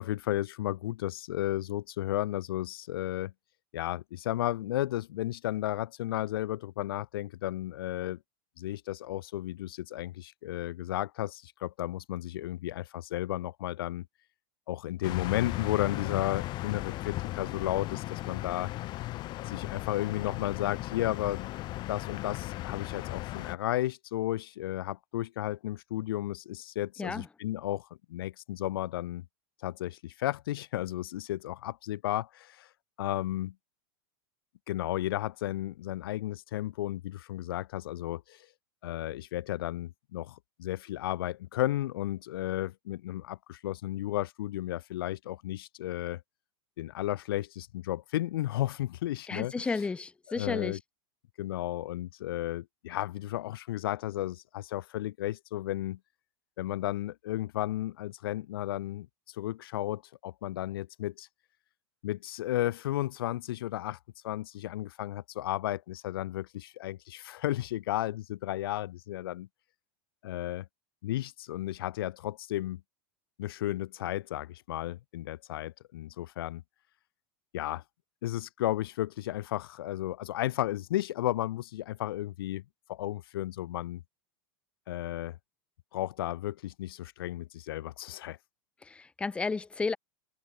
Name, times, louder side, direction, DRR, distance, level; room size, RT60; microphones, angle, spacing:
voice 1, 0.0-3.3 3.7-8.2 8.6-14.1 14.7-18.7 19.5-21.5 21.9-29.2 29.6-32.7 33.0-33.5 34.7-38.5 38.8-46.2 46.8-49.5 50.3-50.8 51.4-56.0 56.6-61.3 62.0-64.0 64.2-69.5 70.2-70.7 71.0-72.8 73.4-76.6 77.5-77.8 78.2-82.6 82.9-84.0 84.9-85.4 85.9-88.4, left 14 dB, 80° left, 1.2 m, -33 dB
sound 1, 15.0-23.6, left 17 dB, 35° left, 4.6 m, -36 dB
voice 2, 49.3-50.8 88.8-90.0, left 4 dB, 10° left, 0.7 m, -32 dB
supercardioid pair, 145°, 12 cm